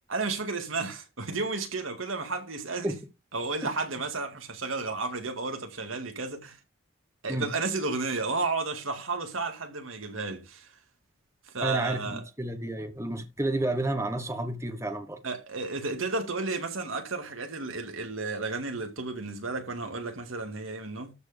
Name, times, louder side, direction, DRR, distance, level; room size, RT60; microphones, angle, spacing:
voice 1, 0.1-2.9 3.3-6.6 7.2-10.7 11.5-12.2 15.2-21.1, right 3 dB, 85° right, 2.2 m, -32 dB
voice 2, 11.6-15.2, right 1 dB, 15° right, 1.2 m, -31 dB
13.0 x 4.6 x 5.2 m
head